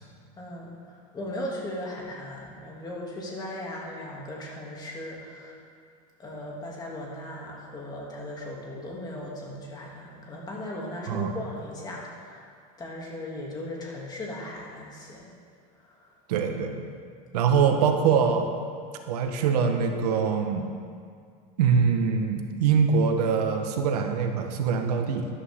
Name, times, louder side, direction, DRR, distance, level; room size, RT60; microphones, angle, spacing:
voice 1, 0.4-0.7 1.1-5.6 6.2-12.4 12.8-15.3 17.3-17.5, left 1 dB, 20° left, -3 dB, 2.7 m, -37 dB
voice 2, 16.3-16.8 17.3-18.5 19.1-20.7 21.6-25.3, right 6 dB, 85° right, 5 dB, 1.4 m, -23 dB
13.5 x 11.0 x 3.8 m, 2.2 s
supercardioid pair, 135°, 20 cm